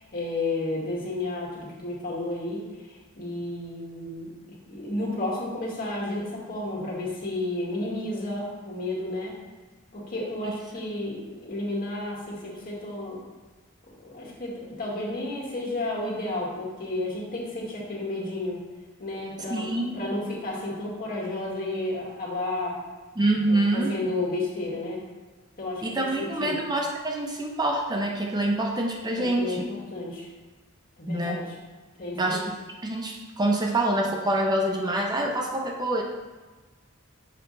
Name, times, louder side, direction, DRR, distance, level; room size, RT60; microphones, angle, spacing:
voice 1, 0.0-2.6 3.2-4.3 4.7-9.3 9.9-13.2 14.0-18.6 19.0-22.8 23.5-25.0 25.6-26.6 29.2-30.3 31.0-31.5 32.0-32.5, left 2 dB, 45° left, -4 dB, 1.9 m, -32 dB
voice 2, 19.5-20.0 23.2-23.9 25.8-29.6 31.1-31.4 32.2-32.4 32.8-36.0, right 1 dB, 20° right, 1 dB, 0.5 m, -26 dB
6.6 x 4.9 x 3.9 m, 1.3 s
head